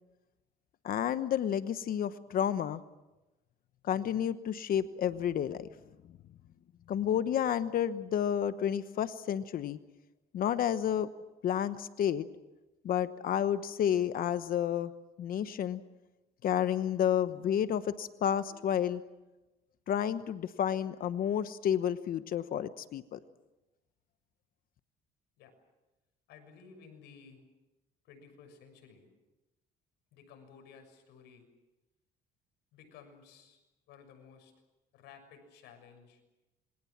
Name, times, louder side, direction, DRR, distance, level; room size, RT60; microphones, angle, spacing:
voice 1, 0.8-2.8 3.9-5.7 6.9-9.8 10.3-11.1 11.4-12.3 12.8-14.9 15.2-15.8 16.4-19.0 19.9-23.2, left 9 dB, 60° left, 12 dB, 1.1 m, -30 dB
voice 2, 26.3-27.4 28.0-29.1 30.1-31.5 32.7-34.5 34.9-36.2, left 6 dB, 85° left, 6 dB, 6.6 m, -55 dB
27.5 x 23.5 x 7.4 m, 1.0 s
cardioid pair, 110°, 17 cm